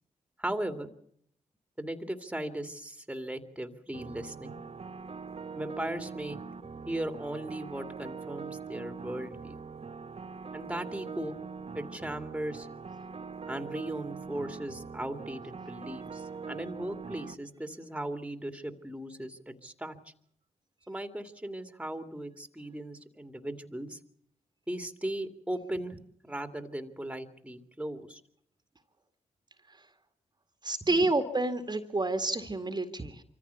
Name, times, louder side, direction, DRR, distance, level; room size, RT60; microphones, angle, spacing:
voice 1, 0.4-0.9 1.8-4.6 5.5-6.4 6.9-9.6 10.5-11.4 11.7-12.7 13.5-20.0 20.9-24.0 24.7-28.2 30.8-31.1, right 1 dB, 10° right, 9 dB, 2.4 m, -37 dB
sound 1, 3.9-17.3, right 5 dB, 45° right, 1.2 m, -42 dB
voice 2, 30.6-33.2, right 2 dB, 30° right, 8 dB, 2.1 m, -29 dB
24.5 x 15.0 x 8.2 m, 0.69 s
supercardioid pair, 50°, 14 cm